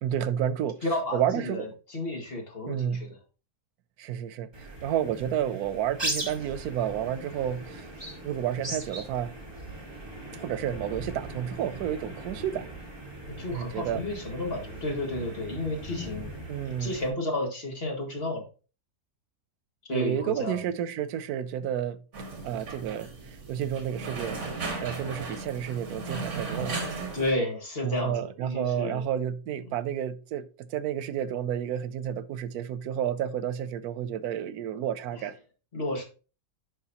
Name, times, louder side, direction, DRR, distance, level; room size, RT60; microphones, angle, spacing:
voice 1, 0.0-0.8 1.1-1.7 2.7-3.1 4.0-7.9 8.2-9.4 10.4-12.7 13.5-14.0 16.5-17.0 19.9-22.0 22.4-24.4 24.8-27.1 27.8-35.4, right 10 dB, 90° right, 1.1 m, -31 dB
voice 2, 0.8-3.2 13.4-16.4 16.8-18.4 19.9-20.6 27.1-29.0 35.1-35.2 35.7-36.0, left 1 dB, 40° left, 2.1 m, -32 dB
sound 1, 4.5-17.1, right 1 dB, 15° right, 1.8 m, -39 dB
sound 2, 22.1-27.3, right 3 dB, 55° right, 1.7 m, -36 dB
10.5 x 4.8 x 2.9 m
omnidirectional pair, 1.5 m